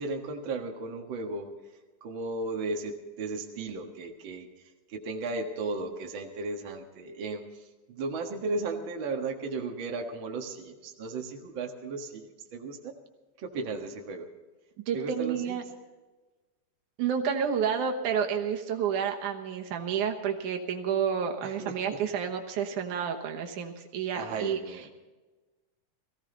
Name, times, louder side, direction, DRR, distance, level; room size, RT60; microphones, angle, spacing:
voice 1, 0.0-1.5 2.0-4.5 4.9-7.6 7.9-12.9 13.4-14.3 14.9-15.6 21.4-22.0 24.1-24.9, right 3 dB, 45° right, 2 dB, 2.0 m, -35 dB
voice 2, 14.9-15.6 17.0-24.9, right 7 dB, 80° right, 3 dB, 2.7 m, -30 dB
18.5 x 16.0 x 4.0 m, 1.2 s
omnidirectional pair, 3.5 m